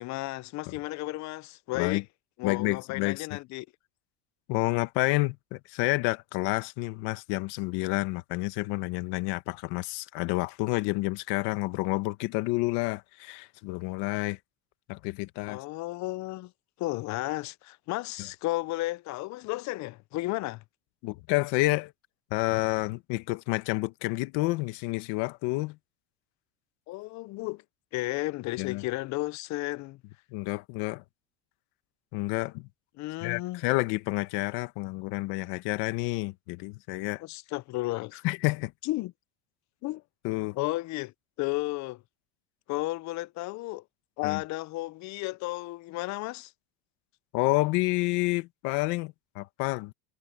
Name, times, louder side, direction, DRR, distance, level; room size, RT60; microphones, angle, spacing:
voice 1, 0.0-2.0 2.4-3.7 15.5-16.5 16.8-20.6 26.9-27.6 27.9-30.0 33.0-33.6 37.2-38.2 38.8-39.1 39.8-40.0 40.5-42.0 42.7-43.8 44.2-46.5, left 19 dB, 45° left, 0.4 m, -33 dB
voice 2, 2.4-3.3 4.5-14.4 14.9-15.6 21.0-21.9 22.3-25.8 28.6-28.8 30.3-31.0 32.1-32.7 33.2-37.2 38.2-38.7 40.2-40.6 44.2-44.4 47.3-49.9, left 22 dB, 70° left, 1.5 m, -29 dB
cardioid pair, 130°, 42 cm